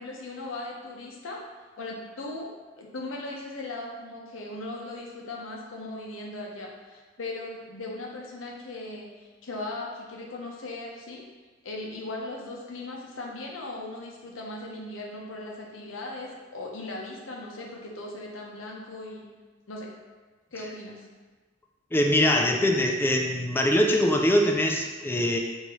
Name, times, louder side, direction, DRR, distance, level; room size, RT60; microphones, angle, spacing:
voice 1, 0.0-1.4 1.8-2.5 2.8-11.2 11.6-19.3 19.7-19.9 20.5-21.1, left 2 dB, 75° left, -1 dB, 0.7 m, -38 dB
voice 2, 21.9-25.4, left 1 dB, 10° left, 2 dB, 0.3 m, -23 dB
4.7 x 2.7 x 3.0 m, 1.4 s
head